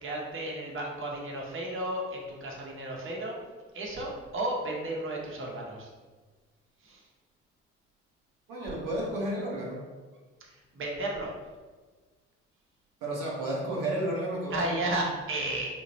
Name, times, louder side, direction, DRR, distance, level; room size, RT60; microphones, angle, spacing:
voice 1, 0.0-3.3 3.7-5.9 6.8-7.0 10.4-11.3 14.5-15.7, right 1 dB, 35° right, -2 dB, 1.1 m, -33 dB
voice 2, 8.5-9.8 13.0-14.9, right 1 dB, 70° right, -4 dB, 1.0 m, -32 dB
4.2 x 2.9 x 2.8 m, 1.3 s
hypercardioid pair, 45°, 35 cm